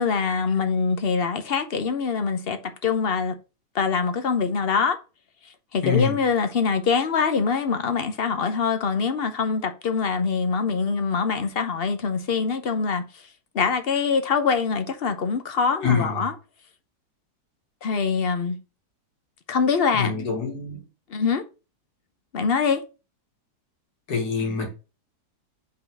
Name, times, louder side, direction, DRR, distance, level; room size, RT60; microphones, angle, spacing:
voice 1, 0.0-3.3 3.7-5.0 5.7-13.2 13.5-16.3 17.8-18.6 19.5-20.1 21.1-21.4 22.3-22.8, left 5 dB, 45° left, 0.8 m, -24 dB
voice 2, 5.8-6.2 15.8-16.3 19.9-20.8 24.1-24.7, left 5 dB, 70° left, 2.4 m, -25 dB
5.7 x 4.0 x 6.2 m
omnidirectional pair, 1.8 m